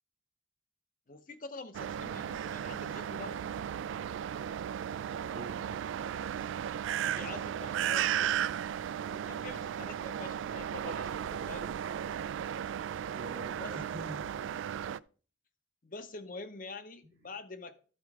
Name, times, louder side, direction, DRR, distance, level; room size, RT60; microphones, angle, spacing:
voice 1, 1.1-3.5 7.0-8.4 9.1-11.7 13.6-13.8 15.8-17.8, left 3 dB, 45° left, 10 dB, 0.8 m, -46 dB
sound 1, 1.7-15.0, right 9 dB, 85° right, 0.3 m, -35 dB
voice 2, 5.3-5.8 13.1-14.4 17.0-17.3, right 1 dB, 45° right, 0 dB, 1.2 m, -45 dB
12.0 x 4.5 x 4.8 m, 0.39 s
head